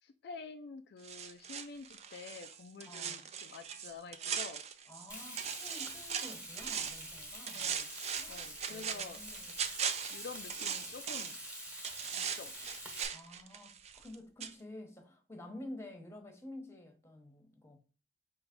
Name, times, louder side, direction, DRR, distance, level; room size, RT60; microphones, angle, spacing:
voice 1, 0.0-4.6 7.5-7.9 8.3-9.2 10.1-11.4 12.1-12.6, left 4 dB, 60° left, 0.4 m, -48 dB
sound 1, 1.0-5.1 5.4-7.1 7.5-11.5 11.8-14.2 14.4-14.5, right 7 dB, 35° right, 0.4 m, -39 dB
voice 2, 2.8-3.3 4.9-7.7 8.2-9.5 13.1-17.8, left 1 dB, 15° left, 0.9 m, -50 dB
Frying (food), 5.1-13.0, equal, 5° right, 1.1 m, -46 dB
4.6 x 3.1 x 3.6 m
head